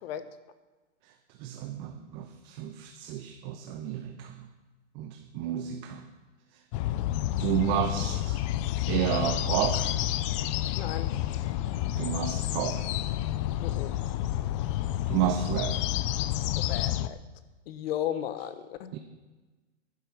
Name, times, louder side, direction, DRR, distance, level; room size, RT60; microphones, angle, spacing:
voice 1, 1.4-4.5 4.9-6.1 7.4-8.4 8.9-9.9 11.9-12.9 15.1-15.8 18.9-19.0, right 10 dB, 40° right, 5 dB, 1.0 m, -31 dB
sound 1, 6.7-17.1, left 13 dB, 30° left, 0.4 m, -29 dB
voice 2, 10.8-11.1 13.6-14.0 16.6-17.2 17.7-18.9, left 11 dB, 55° left, 12 dB, 1.2 m, -35 dB
11.5 x 10.5 x 6.1 m, 1.2 s
hypercardioid pair, 140°, 35 cm